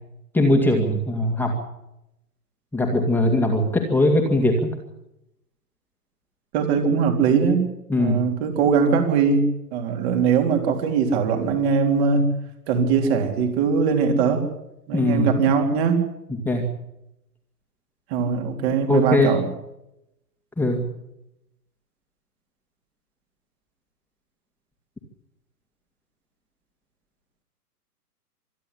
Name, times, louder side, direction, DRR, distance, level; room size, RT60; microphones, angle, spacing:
voice 1, 0.3-1.5 2.7-4.7 7.9-8.2 14.9-15.3 16.4-16.7 18.9-19.3 20.6-20.9, left 1 dB, 5° left, 1 dB, 2.2 m, -20 dB
voice 2, 6.5-7.7 7.9-12.3 12.7-14.5 14.9-16.0 18.1-19.5, right 5 dB, 40° right, 4 dB, 4.0 m, -21 dB
26.0 x 11.0 x 9.9 m, 0.87 s
hypercardioid pair, 125°, 48 cm